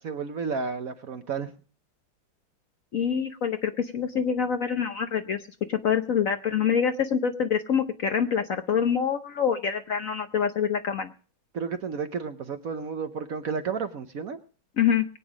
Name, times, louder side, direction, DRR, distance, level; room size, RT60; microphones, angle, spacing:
voice 1, 0.0-1.5 11.5-14.4, right 5 dB, 55° right, 9 dB, 1.1 m, -32 dB
voice 2, 2.9-5.4 5.7-11.1 14.8-15.1, left 7 dB, 55° left, 8 dB, 1.0 m, -25 dB
22.0 x 9.2 x 5.0 m, 0.40 s
omnidirectional pair, 2.1 m